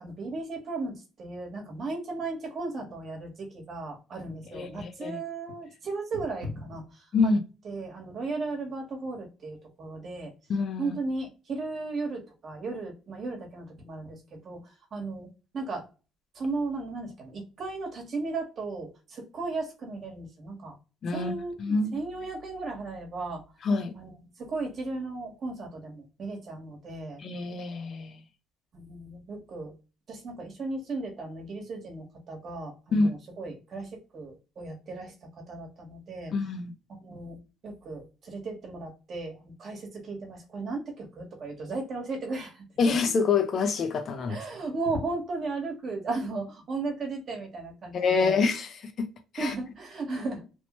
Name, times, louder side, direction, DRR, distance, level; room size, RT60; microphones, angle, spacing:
voice 1, 0.0-7.3 7.6-10.3 10.8-14.6 14.9-15.3 15.5-15.8 16.3-20.8 21.1-23.4 23.9-24.1 24.4-27.2 28.7-29.7 30.1-35.1 35.5-36.3 36.9-37.4 37.6-42.6 44.3-48.4 49.4-50.4, right 3 dB, 50° right, 1.1 m, -35 dB
voice 2, 4.5-5.2 7.1-7.4 10.5-11.0 21.0-22.0 23.6-23.9 27.2-28.2 32.9-33.1 36.3-36.7 42.8-44.4 47.9-49.1 49.3-49.5, left 4 dB, 50° left, 0.5 m, -26 dB
3.0 x 2.1 x 2.8 m
cardioid pair, 110°, 0 cm